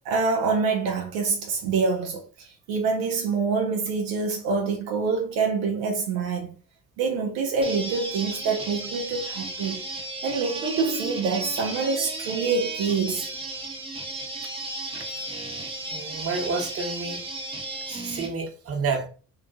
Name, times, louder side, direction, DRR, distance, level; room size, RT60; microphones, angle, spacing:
voice 1, 0.0-6.5 7.0-9.8 10.2-13.2, right 4 dB, 85° right, 0.5 m, -26 dB
sound 1, 7.6-18.3, right 2 dB, 15° right, 0.6 m, -34 dB
voice 2, 15.9-17.2 18.0-19.1, right 4 dB, 40° right, 0.9 m, -29 dB
2.8 x 2.4 x 2.5 m
hypercardioid pair, 50°, 34 cm